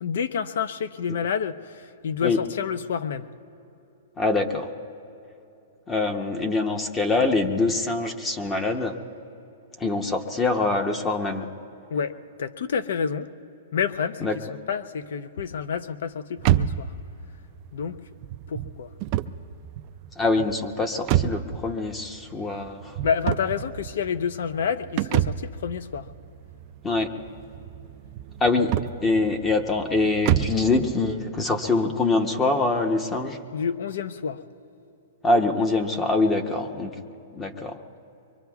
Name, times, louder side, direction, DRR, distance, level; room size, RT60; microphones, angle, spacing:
voice 1, 0.0-3.3 11.9-12.1 12.4-13.3 13.7-14.3 14.7-16.9 17.7-18.0 18.5-18.9 23.0-26.1 33.5-34.4, left 7 dB, 70° left, 12 dB, 0.6 m, -28 dB
voice 2, 4.2-4.7 5.9-9.0 9.8-11.5 14.2-14.4 20.2-23.0 26.8-27.1 28.4-28.7 29.0-33.4 35.2-37.0 37.3-37.8, left 3 dB, 15° left, 4 dB, 0.8 m, -24 dB
sound 1, 16.4-30.7, right 12 dB, 40° right, 0.4 m, -29 dB
24.5 x 23.5 x 2.3 m, 2.8 s
hypercardioid pair, 145°, 0 cm